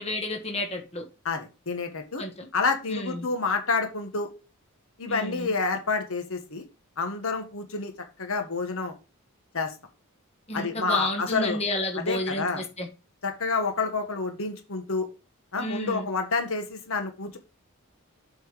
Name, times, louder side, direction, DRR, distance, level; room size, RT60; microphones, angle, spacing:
voice 1, 0.0-1.1 2.2-2.5 2.9-3.3 5.1-5.5 10.5-12.9 15.6-16.1, left 1 dB, 30° left, 1.5 m, -31 dB
voice 2, 1.2-2.2 2.5-4.3 5.0-6.6 7.0-7.9 8.2-8.9 9.5-9.7 10.5-11.6 11.9-12.6 13.2-15.1 15.5-17.4, left 4 dB, 70° left, 1.5 m, -28 dB
7.7 x 4.6 x 4.9 m
head